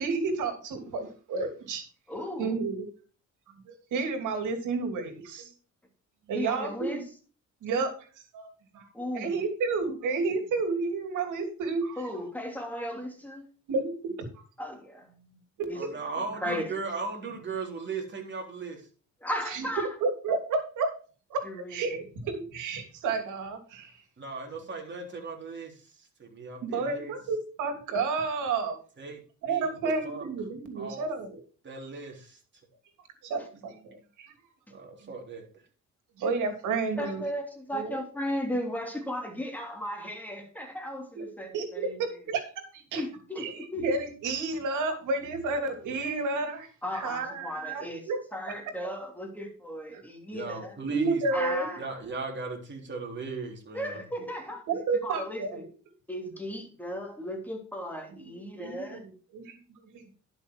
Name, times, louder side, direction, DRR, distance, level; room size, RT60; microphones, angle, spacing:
voice 1, 0.0-1.8 2.4-2.8 3.7-5.5 6.3-7.0 7.6-8.1 8.3-8.9 9.1-12.0 13.7-14.1 15.6-15.9 19.5-20.9 21.3-21.4 21.7-23.9 26.6-28.8 29.4-31.4 33.2-34.3 35.0-35.1 36.2-37.2 37.7-38.0 41.1-41.2 41.5-42.4 42.7-43.0 43.4-48.2 49.9-50.0 50.8-51.7 54.7-55.7 58.1-58.2 58.6-59.6 59.9-60.1, right 4 dB, 85° right, 6 dB, 2.9 m, -31 dB
voice 2, 2.1-2.6 6.3-7.0 8.9-9.3 12.0-13.5 14.6-15.1 15.7-15.8 16.2-16.7 19.2-19.9 21.4-21.8 33.4-33.5 37.0-42.0 42.9-43.4 43.7-43.8 46.8-50.8 51.3-51.9 53.7-54.6 55.0-55.6 56.1-59.0, equal, 5° left, 2 dB, 3.2 m, -35 dB
voice 3, 15.7-18.8 24.2-25.7 26.2-27.1 29.0-29.2 29.5-30.3 30.8-31.1 31.6-32.4 34.7-35.4 50.3-51.2 51.8-54.0, right 4 dB, 40° right, 1 dB, 3.6 m, -37 dB
11.0 x 6.2 x 4.6 m, 0.38 s
cardioid pair, 90°, 30 cm